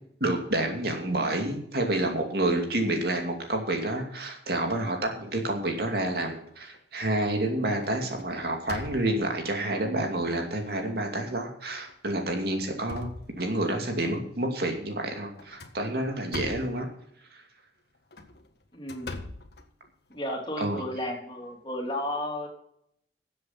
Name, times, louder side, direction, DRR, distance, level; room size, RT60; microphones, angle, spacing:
voice 1, 0.2-13.1 13.4-16.9 17.3-17.4 20.6-20.8, right 1 dB, 60° right, 3 dB, 2.5 m, -29 dB
sound 1, 6.2-6.8 7.2-7.5 7.8-9.4 10.1-10.2 10.7-10.8 11.7-11.9 12.4-13.8 15.4-16.8 17.9-20.2, left 2 dB, 60° left, 1.6 m, -42 dB
voice 2, 18.7-19.1 20.1-22.5, left 1 dB, 25° left, 1 dB, 3.1 m, -33 dB
13.0 x 8.0 x 5.8 m, 0.68 s
head